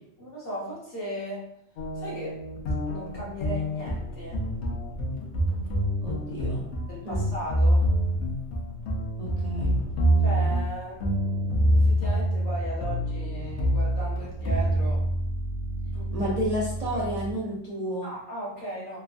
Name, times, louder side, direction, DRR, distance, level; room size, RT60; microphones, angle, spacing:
voice 1, 0.2-1.5 1.9-2.4 2.9-4.5 6.9-7.9 10.2-15.0 15.9-16.3 16.9-17.0 18.0-19.0, right 1 dB, 50° left, -6 dB, 1.1 m, -37 dB
sound 1, 1.8-17.3, equal, 70° left, 0.8 m, -26 dB
voice 2, 6.0-6.7 7.0-7.3 9.2-9.8 16.1-18.1, equal, 50° right, -6 dB, 0.5 m, -31 dB
3.0 x 2.2 x 2.4 m, 0.73 s
omnidirectional pair, 1.3 m